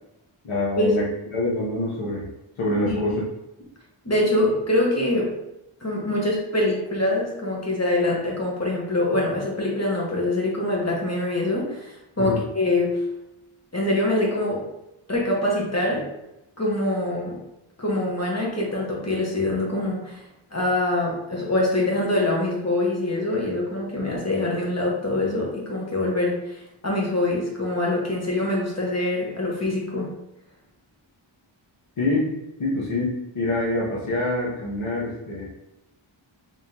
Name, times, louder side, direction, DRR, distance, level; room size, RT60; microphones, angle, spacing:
voice 1, 0.4-1.1 1.3-2.3 2.6-3.2 12.2-12.4 32.0-32.3 32.6-35.5, left 2 dB, 75° left, -6 dB, 1.0 m, -25 dB
voice 2, 2.8-3.2 4.0-5.3 5.8-13.0 13.7-14.7 15.1-16.1 16.6-17.4 17.8-20.2 20.5-30.1, left 1 dB, 30° left, -3 dB, 1.2 m, -24 dB
3.5 x 3.4 x 2.8 m, 0.90 s
wide cardioid pair, 50°, 50 cm